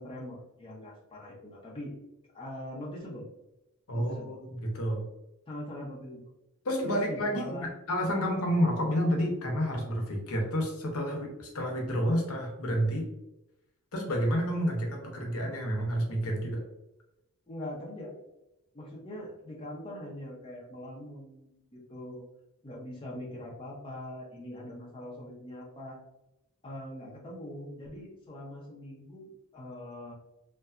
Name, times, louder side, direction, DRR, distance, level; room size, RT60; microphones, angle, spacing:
voice 1, 0.0-1.9 2.3-3.3 3.9-4.4 5.5-6.2 6.8-7.7 17.5-18.1 18.7-22.2 22.6-26.0 26.6-30.1, left 1 dB, 25° left, -4 dB, 0.6 m, -42 dB
voice 2, 3.9-5.0 6.6-13.0 13.9-16.6, equal, 80° left, 1 dB, 0.7 m, -29 dB
2.7 x 2.2 x 2.3 m, 0.90 s
head